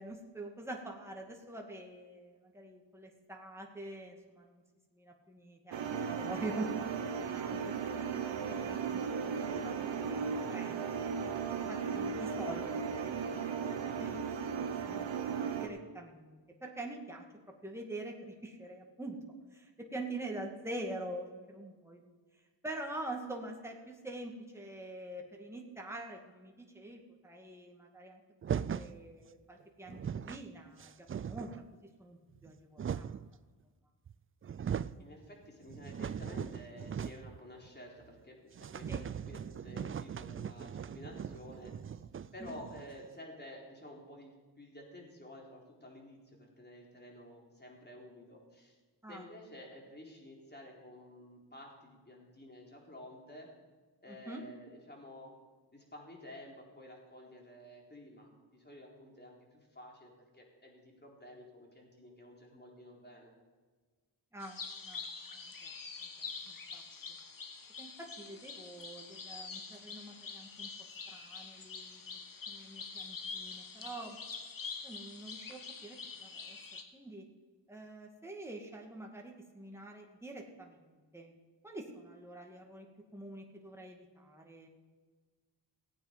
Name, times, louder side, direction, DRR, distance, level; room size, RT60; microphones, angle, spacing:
voice 1, 0.0-4.6 4.9-6.7 7.3-7.7 8.4-9.3 9.6-13.5 13.8-14.3 14.5-17.2 17.6-19.2 19.5-22.1 22.6-28.2 28.5-31.5 32.0-33.1 38.9-39.0 42.4-42.5 49.0-49.2 54.1-54.4 64.3-64.6 64.9-65.1 65.3-65.7 66.0-66.1 66.5-66.8 67.8-67.9 68.2-70.7 71.1-72.0 72.5-74.2 74.8-77.2 77.7-81.4 81.6-82.9 83.1-84.7, right 1 dB, 5° right, 1 dB, 2.2 m, -45 dB
sound 1, 5.7-15.7, right 6 dB, 90° right, 1.1 m, -36 dB
sound 2, 28.4-29.0 29.6-29.7 29.9-30.4 30.8-31.7 32.3-33.3 34.1-34.2 34.4-35.0 35.4-37.4 37.7-37.8 38.1-38.2 38.5-43.1, right 8 dB, 30° right, 0.4 m, -39 dB
voice 2, 35.0-42.0 42.3-44.3 44.6-48.8 49.1-53.5 54.0-55.3 55.7-63.3 74.8-74.9, left 1 dB, 25° left, -1 dB, 3.9 m, -52 dB
sound 3, 64.4-76.8, left 5 dB, 50° left, 1.4 m, -45 dB
16.0 x 8.9 x 5.2 m, 1.4 s
cardioid pair, 60°, 44 cm